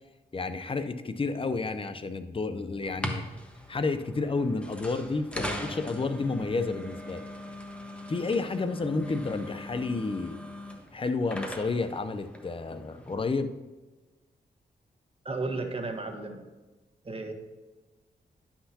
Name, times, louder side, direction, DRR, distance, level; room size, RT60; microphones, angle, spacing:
voice 1, 0.3-3.3 3.7-7.3 8.1-10.4 10.9-13.5, left 3 dB, 30° left, 11 dB, 0.6 m, -30 dB
sound 1, 2.8-13.1, left 1 dB, 5° left, 1.3 m, -40 dB
voice 2, 15.2-16.4 17.0-17.3, right 3 dB, 35° right, 4 dB, 1.4 m, -33 dB
11.0 x 5.9 x 2.9 m, 1.2 s
cardioid pair, 55°, 18 cm